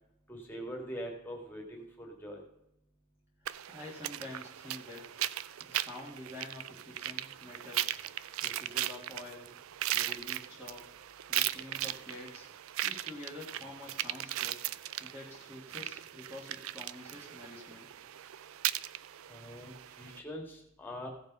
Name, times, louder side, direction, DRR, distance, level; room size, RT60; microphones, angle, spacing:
voice 1, 0.3-2.4 19.3-21.1, equal, 10° left, 1 dB, 2.0 m, -43 dB
voice 2, 3.4-5.1 5.6-8.0 8.4-9.5 9.9-10.9 11.3-12.5 12.8-14.6 15.0-17.9, left 1 dB, 10° right, -3 dB, 1.6 m, -47 dB
sound 1, 3.5-20.2, right 13 dB, 65° right, 0.4 m, -38 dB
15.5 x 5.3 x 5.3 m, 0.82 s
head